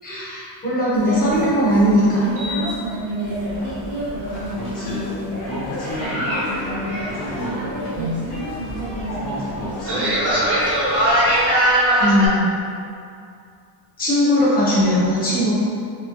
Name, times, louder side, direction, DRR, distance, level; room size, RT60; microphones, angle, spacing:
voice 1, 0.0-2.7 7.9-8.2 12.0-12.6 14.0-15.5, equal, 20° left, -10 dB, 1.1 m, -19 dB
sound 1, 0.9-12.3, right 1 dB, 30° right, 1.0 m, -23 dB
sound 2, 3.2-11.4, left 1 dB, 65° left, 1.4 m, -33 dB
voice 2, 4.5-5.1 5.4-7.9 9.1-10.3, equal, 45° left, -10 dB, 0.7 m, -31 dB
4.3 x 3.1 x 3.1 m, 2.4 s
cardioid pair, 180°, 48 cm